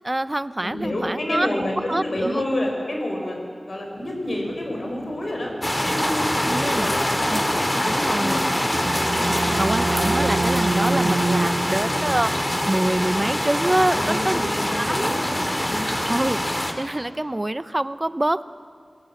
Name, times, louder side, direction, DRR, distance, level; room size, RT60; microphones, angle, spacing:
voice 1, 0.0-2.4 6.4-6.9 7.3-7.4 7.8-8.5 8.7-9.0 9.4-12.3 12.7-15.1 15.9-18.5, right 1 dB, 25° right, 14 dB, 0.7 m, -26 dB
voice 2, 0.6-3.4 3.6-8.7 9.1-9.6 13.7-15.9, left 1 dB, 65° left, 1 dB, 5.0 m, -29 dB
sound 1, 3.9-12.1, equal, 80° left, 8.0 m, -45 dB
sound 2, 5.6-16.7, left 1 dB, 20° left, 2.4 m, -24 dB
sound 3, 8.5-14.0, right 3 dB, 60° right, 0.8 m, -27 dB
27.5 x 21.5 x 7.2 m, 2.2 s
wide cardioid pair, 70°, 0 cm